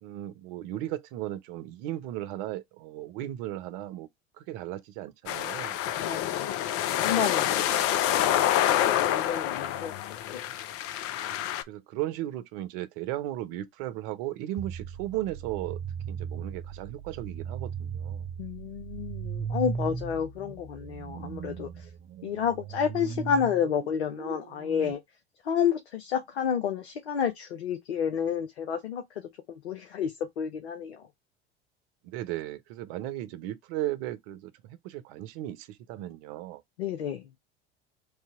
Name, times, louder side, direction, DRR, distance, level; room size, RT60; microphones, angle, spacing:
voice 1, 0.0-4.1 4.4-5.8 7.6-7.8 8.8-9.2 11.7-15.8 16.1-18.3 32.0-36.6, right 14 dB, 65° right, 0.7 m, -36 dB
sound 1, 5.3-11.6, left 12 dB, 50° left, 0.6 m, -27 dB
voice 2, 6.0-8.5 8.8-10.4 18.4-21.9 22.2-25.0 25.4-29.0 29.5-31.1 36.8-37.2, left 7 dB, 85° left, 0.8 m, -30 dB
sound 2, 14.6-24.9, right 6 dB, 35° right, 1.0 m, -38 dB
3.3 x 2.8 x 4.5 m
hypercardioid pair, 75°, 31 cm